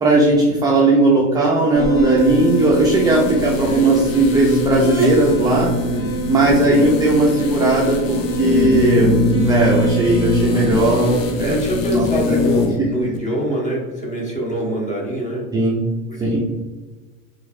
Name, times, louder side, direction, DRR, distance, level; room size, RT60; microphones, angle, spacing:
voice 1, 0.0-5.7 6.3-11.6 11.9-12.4 12.8-12.9 15.5-15.9 16.2-16.4, right 2 dB, 10° right, -4 dB, 0.3 m, -17 dB
sound 1, 1.7-12.2, right 4 dB, 45° left, 1.3 m, -26 dB
sound 2, 2.2-12.8 13.1-13.2, left 3 dB, 70° left, 0.6 m, -24 dB
voice 2, 11.4-15.4 16.1-16.4, right 1 dB, 20° left, -2 dB, 1.1 m, -24 dB
3.5 x 3.0 x 2.4 m, 1.3 s
supercardioid pair, 115°, 40 cm